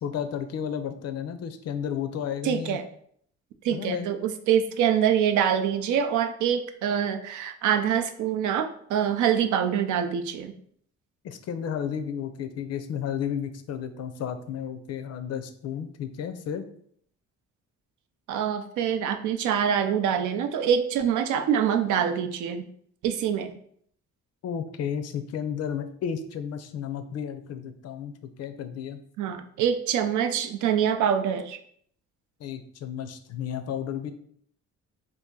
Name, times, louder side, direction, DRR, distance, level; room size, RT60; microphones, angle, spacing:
voice 1, 0.0-2.8 3.7-4.1 11.2-16.6 24.4-29.0 32.4-34.1, left 8 dB, 55° left, 9 dB, 0.5 m, -32 dB
voice 2, 2.4-2.9 3.6-10.5 18.3-22.6 23.0-23.5 29.2-31.6, right 8 dB, 75° right, 8 dB, 0.5 m, -25 dB
2.7 x 2.5 x 3.6 m, 0.64 s
cardioid pair, 90°, 30 cm